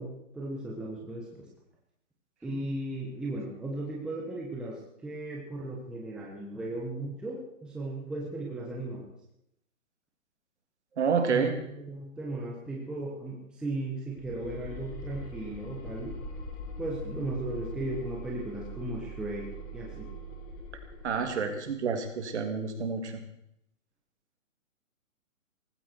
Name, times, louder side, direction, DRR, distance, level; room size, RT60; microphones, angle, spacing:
voice 1, 0.0-1.5 2.4-9.1 11.2-16.1 16.8-19.5 19.7-20.1, right 2 dB, ahead, -3 dB, 1.2 m, -36 dB
voice 2, 11.0-11.5 21.0-23.2, right 5 dB, 55° right, 5 dB, 3.2 m, -29 dB
sound 1, 14.2-21.4, equal, 25° left, 2.4 m, -41 dB
18.5 x 15.5 x 4.6 m, 0.77 s
hypercardioid pair, 165°, 40 cm